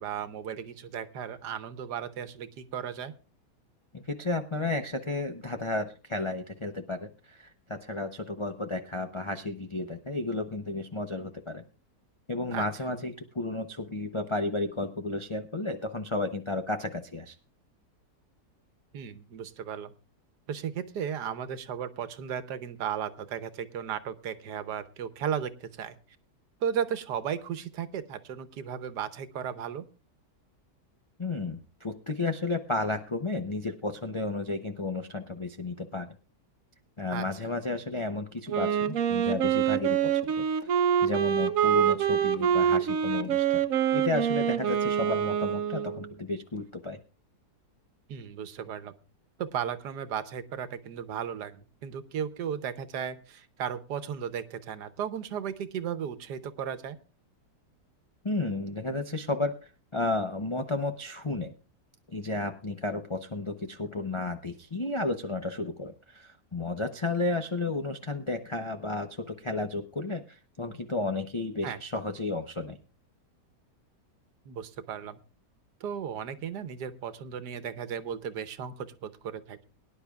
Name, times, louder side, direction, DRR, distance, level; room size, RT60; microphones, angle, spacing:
voice 1, 0.0-3.1 12.5-12.6 18.9-19.9 20.5-25.9 26.6-29.9 37.1-37.2 48.1-48.9 49.4-57.0 71.6-71.8 74.5-75.2 75.8-79.6, right 8 dB, 75° right, 12 dB, 1.5 m, -35 dB
voice 2, 3.9-11.6 12.3-17.3 31.2-36.2 37.0-40.4 41.0-43.6 43.9-47.0 58.2-61.5 62.1-72.8, left 2 dB, 45° left, 5 dB, 0.3 m, -32 dB
Wind instrument woodwind instrument, 38.5-46.1, right 9 dB, 60° right, 1.0 m, -26 dB
23.0 x 10.5 x 2.3 m, 0.33 s
omnidirectional pair, 1.8 m